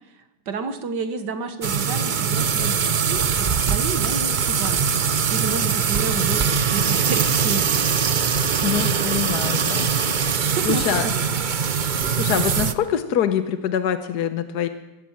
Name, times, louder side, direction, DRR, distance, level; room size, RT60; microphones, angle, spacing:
voice 1, 0.5-7.7 8.8-9.2 9.6-9.8 10.4-11.4, right 5 dB, 85° right, 8 dB, 2.0 m, -31 dB
sound 1, 1.6-12.7, right 6 dB, 50° right, 0.6 m, -22 dB
voice 2, 8.6-9.9 10.2-11.1 12.2-14.7, left 9 dB, 75° left, 9 dB, 1.5 m, -25 dB
23.0 x 16.0 x 7.3 m, 1.0 s
omnidirectional pair, 1.8 m